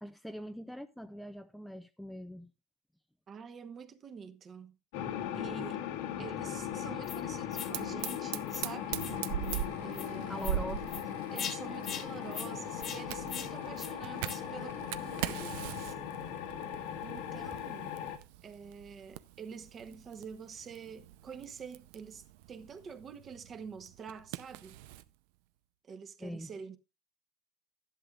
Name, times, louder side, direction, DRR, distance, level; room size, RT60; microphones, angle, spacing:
voice 1, 0.0-2.5 10.3-10.9 26.2-26.5, equal, ahead, 0.4 m, -42 dB
voice 2, 3.3-4.8 5.3-5.9 6.2-9.1 9.8-10.5 11.3-16.0 17.0-18.0 18.4-24.8 25.8-26.8, right 6 dB, 30° right, 1.0 m, -47 dB
sound 1, 4.9-18.2, left 9 dB, 90° left, 1.7 m, -39 dB
sound 2, 7.0-7.2 7.5-7.7 8.0-8.2 8.5-8.6 9.0-9.2 9.4-9.6 9.9-10.1 10.4-10.6 10.9-11.0 11.4-11.6 11.8-12.0 12.3-12.5 12.8-13.0 13.3-13.5 13.8-13.9 14.2-14.4, left 8 dB, 35° left, 1.3 m, -40 dB
Fire, 7.7-25.1, right 12 dB, 80° right, 0.6 m, -42 dB
12.5 x 11.0 x 2.4 m
cardioid pair, 150°, 0 cm